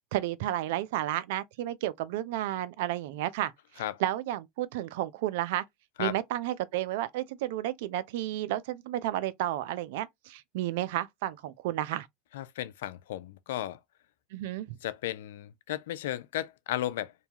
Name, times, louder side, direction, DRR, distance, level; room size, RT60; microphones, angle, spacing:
voice 1, 0.1-3.5 4.0-5.6 6.0-12.1 14.3-14.7, right 14 dB, 70° right, 0.3 m, -32 dB
voice 2, 12.3-13.8 14.8-17.1, left 13 dB, 75° left, 0.3 m, -34 dB
2.7 x 2.3 x 2.8 m
hypercardioid pair, 90°, 0 cm